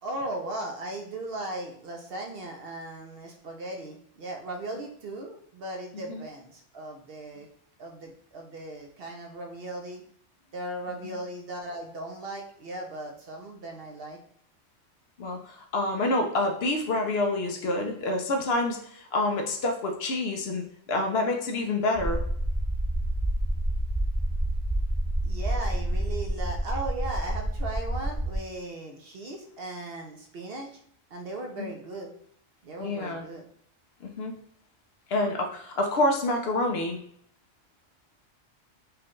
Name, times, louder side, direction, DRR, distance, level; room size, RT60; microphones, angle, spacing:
voice 1, 0.0-7.5 7.8-10.0 10.5-14.2 25.2-30.8 31.1-32.1 32.6-33.4, right 1 dB, 60° right, 2 dB, 0.7 m, -37 dB
voice 2, 15.2-20.6 20.9-22.2 31.6-31.7 32.8-33.2 34.0-34.3 35.1-37.0, left 2 dB, 65° left, 3 dB, 0.8 m, -27 dB
sound 1, 21.9-28.4, right 1 dB, 20° right, 0.5 m, -28 dB
4.9 x 2.3 x 3.0 m, 0.66 s
omnidirectional pair, 1.3 m